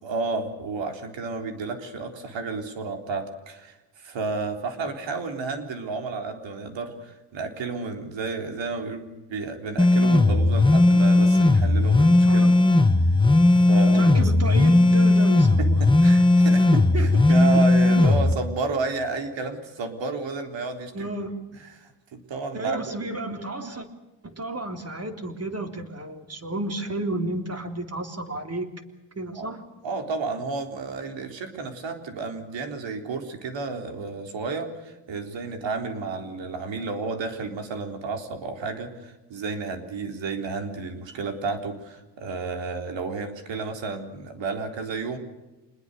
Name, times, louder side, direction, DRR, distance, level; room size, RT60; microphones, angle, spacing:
voice 1, 0.0-12.5 13.5-14.2 15.6-21.1 21.5-23.0 29.3-29.5 29.8-45.2, right 4 dB, 80° right, 6 dB, 3.9 m, -32 dB
sound 1, 9.8-18.3, left 2 dB, 10° left, 1.6 m, -17 dB
voice 2, 12.2-12.6 13.9-16.2 16.5-17.4 18.0-18.2 20.9-21.4 22.5-23.9 24.2-28.7 29.2-29.6, right 1 dB, 35° right, 5 dB, 3.5 m, -32 dB
26.5 x 21.0 x 6.8 m, 1.1 s
cardioid pair, 100°, 44 cm